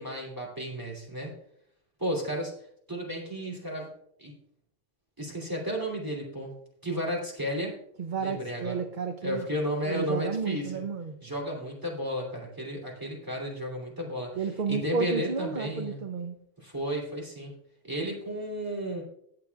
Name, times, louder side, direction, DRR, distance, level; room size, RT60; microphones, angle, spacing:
voice 1, 0.0-1.3 2.0-2.5 2.9-3.9 4.2-4.4 5.2-6.5 6.8-7.7 8.2-8.8 9.2-10.8 11.2-16.0 16.6-17.5 17.8-19.0, equal, 20° right, -2 dB, 2.8 m, -33 dB
voice 2, 8.0-9.5 9.8-11.2 14.3-16.4, right 5 dB, 55° right, 6 dB, 0.8 m, -32 dB
19.0 x 6.9 x 2.3 m, 0.72 s
omnidirectional pair, 1.1 m